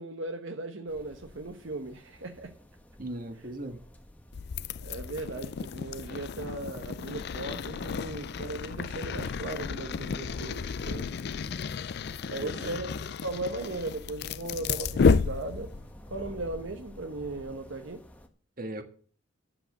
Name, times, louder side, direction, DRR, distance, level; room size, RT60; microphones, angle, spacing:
voice 1, 0.0-2.5 4.8-11.1 12.3-12.9 13.2-15.7 16.1-18.0, right 2 dB, 70° right, 1.0 m, -37 dB
sound 1, 0.9-18.3, left 1 dB, 10° left, 1.2 m, -52 dB
voice 2, 3.0-3.8 12.4-12.7 18.6-18.8, right 1 dB, 45° right, 1.5 m, -38 dB
sound 2, 4.3-15.9, left 5 dB, 55° left, 0.4 m, -32 dB
10.5 x 7.7 x 6.6 m
head